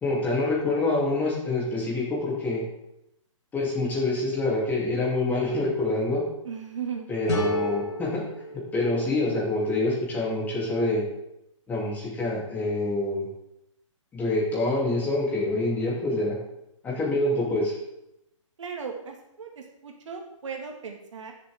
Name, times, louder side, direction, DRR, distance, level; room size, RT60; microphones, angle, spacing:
voice 1, 0.0-2.6 3.5-6.2 7.1-8.2 8.7-11.0 11.7-13.3 14.1-16.4 16.8-17.7, left 2 dB, 10° left, -5 dB, 3.0 m, -26 dB
voice 2, 6.4-7.1 18.6-21.3, right 6 dB, 65° right, 2 dB, 2.2 m, -37 dB
sound 1, 7.3-10.1, left 1 dB, 55° left, 3.2 m, -32 dB
16.5 x 7.4 x 3.7 m, 0.85 s
hypercardioid pair, 160°, 17 cm